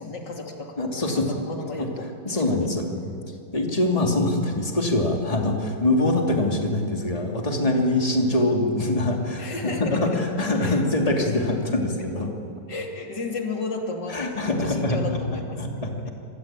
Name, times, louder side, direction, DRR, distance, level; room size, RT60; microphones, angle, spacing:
voice 1, 0.0-2.7 9.4-10.2 10.6-10.8 12.7-15.6 16.1-16.2, left 3 dB, 90° left, 2 dB, 3.3 m, -34 dB
voice 2, 0.8-1.4 2.2-3.1 3.5-12.3 14.1-15.2 15.6-15.9, left 2 dB, 20° left, 1 dB, 2.9 m, -24 dB
25.5 x 22.5 x 9.1 m, 2.5 s
omnidirectional pair, 1.8 m